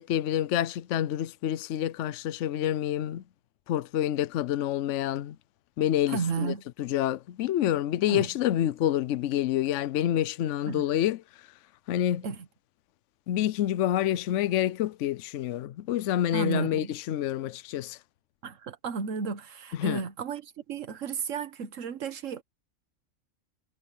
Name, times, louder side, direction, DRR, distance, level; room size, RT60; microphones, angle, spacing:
voice 1, 0.0-3.2 3.7-5.4 5.8-11.2 11.9-12.2 13.3-18.0 19.8-20.0, left 12 dB, 75° left, 0.9 m, -28 dB
voice 2, 6.1-6.6 8.1-8.3 10.7-10.8 12.2-12.5 16.3-16.9 18.4-22.4, right 6 dB, 80° right, 1.5 m, -33 dB
omnidirectional pair, 1.3 m